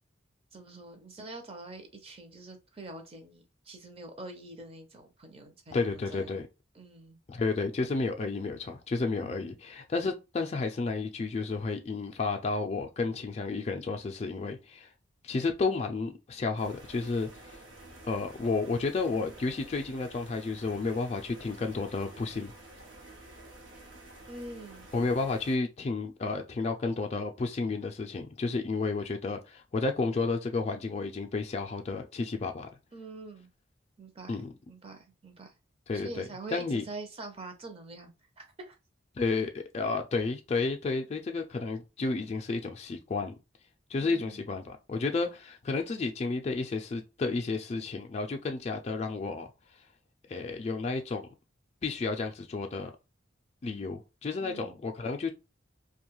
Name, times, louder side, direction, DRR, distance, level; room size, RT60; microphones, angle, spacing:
voice 1, 0.5-6.4 6.7-7.2 9.2-9.5 24.3-24.9 32.9-33.5 34.0-34.4 34.7-35.5 35.9-38.8 44.0-44.4 54.4-54.8, right 2 dB, 30° right, 0.6 m, -45 dB
voice 2, 5.7-6.4 7.3-14.9 15.2-17.6 18.1-22.5 24.9-32.7 34.3-34.5 35.9-36.2 36.5-36.8 39.2-43.3 43.9-49.5 50.3-51.3 51.8-52.9 53.6-55.3, left 3 dB, 35° left, 0.3 m, -31 dB
sound 1, 16.6-25.6, right 2 dB, 80° right, 0.9 m, -50 dB
2.5 x 2.2 x 3.0 m
head